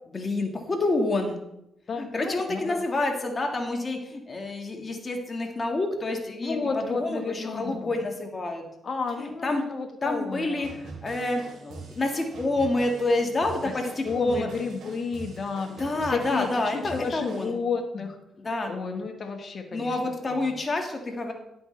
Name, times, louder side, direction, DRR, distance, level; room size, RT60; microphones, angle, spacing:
voice 1, 0.0-1.4 2.0-6.6 6.9-8.6 9.2-9.6 10.0-10.7 11.0-14.5 15.7-17.6 18.4-18.7 19.7-21.3, left 2 dB, 35° left, 3 dB, 1.7 m, -28 dB
voice 2, 1.9-2.8 6.4-8.0 8.8-10.7 13.6-13.8 14.0-18.2 18.7-20.0 20.2-20.6, left 5 dB, 50° left, 4 dB, 1.4 m, -32 dB
sound 1, 10.6-17.5, right 3 dB, 75° right, 2.6 m, -43 dB
11.0 x 7.8 x 3.3 m, 0.84 s
cardioid pair, 75°, 0 cm